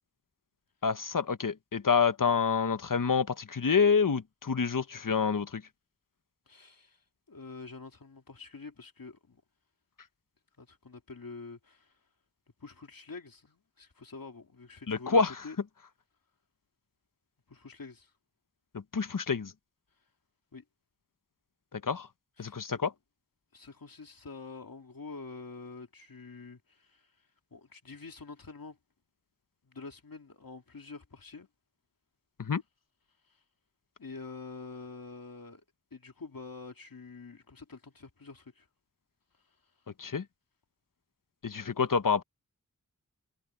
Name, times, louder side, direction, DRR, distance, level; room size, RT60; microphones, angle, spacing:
voice 1, 0.8-5.6 14.9-15.3 18.9-19.5 21.7-22.1 22.4-22.9 32.4-32.6 40.0-40.2 41.4-42.2, left 5 dB, 70° left, 1.0 m, -27 dB
voice 2, 6.5-7.0 7.3-9.4 10.6-12.0 12.6-15.6 17.5-18.1 20.5-20.6 22.4-22.6 23.5-27.1 27.5-28.8 29.6-31.5 33.2-33.4 34.0-35.6 35.9-38.7, left 4 dB, 85° left, 2.6 m, -46 dB
wide cardioid pair, 40°, 34 cm